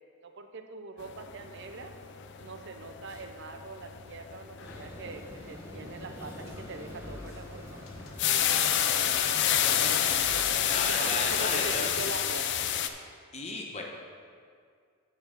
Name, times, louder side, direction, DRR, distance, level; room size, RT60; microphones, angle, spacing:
voice 1, 0.2-1.9 2.4-7.8 10.8-12.5, right 3 dB, 55° right, 7 dB, 0.6 m, -42 dB
sound 1, 1.0-12.9, left 10 dB, 55° left, 0.4 m, -30 dB
sound 2, 4.6-12.0, equal, 10° right, 0.9 m, -47 dB
sound 3, 6.5-8.5 8.9-12.9, left 2 dB, 80° left, 0.9 m, -50 dB
voice 2, 9.5-9.9 10.2-11.9 13.3-13.8, left 2 dB, 30° left, 0 dB, 1.1 m, -35 dB
9.3 x 5.5 x 5.2 m, 2.1 s
head